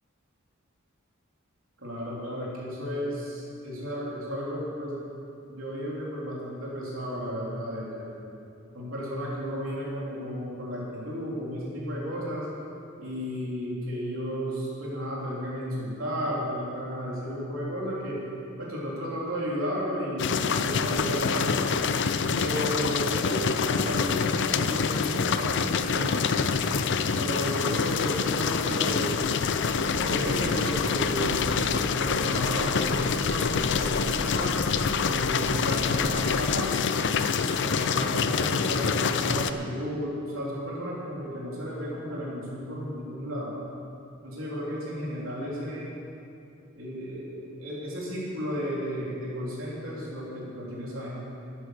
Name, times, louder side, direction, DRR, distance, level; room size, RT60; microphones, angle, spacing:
voice 1, 1.8-5.0 5.5-8.2 8.7-12.5 13.0-18.2 18.6-21.7 22.4-26.3 27.0-29.3 30.0-34.6 35.0-36.7 37.6-43.5 44.2-45.9 46.7-51.2, equal, 70° right, -5 dB, 3.8 m, -33 dB
sound 1, 20.2-39.5, left 5 dB, 60° left, 0.5 m, -26 dB
sound 2, 26.1-36.4, equal, 40° left, 1.6 m, -41 dB
12.5 x 9.9 x 6.7 m, 2.6 s
head